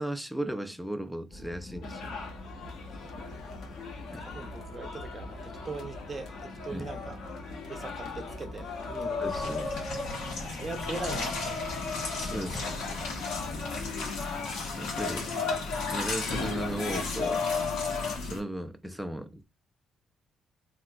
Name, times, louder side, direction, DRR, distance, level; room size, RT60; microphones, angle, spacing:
voice 1, 0.0-2.1 4.1-4.3 6.7-6.9 9.2-9.7 12.1-12.9 13.3-13.8 14.8-15.3 15.9-17.4 18.2-19.4, right 1 dB, ahead, 0.4 m, -36 dB
sound 1, 1.3-14.0, left 1 dB, 40° left, 0.6 m, -45 dB
sound 2, 1.8-18.2, left 4 dB, 70° left, 0.8 m, -37 dB
voice 2, 3.4-3.8 4.2-7.2 7.7-9.8 10.4-11.8 12.3-13.5, right 4 dB, 35° right, 0.7 m, -42 dB
sound 3, 9.2-18.4, left 3 dB, 90° left, 1.3 m, -36 dB
3.1 x 2.9 x 2.3 m
cardioid pair, 90°, 0 cm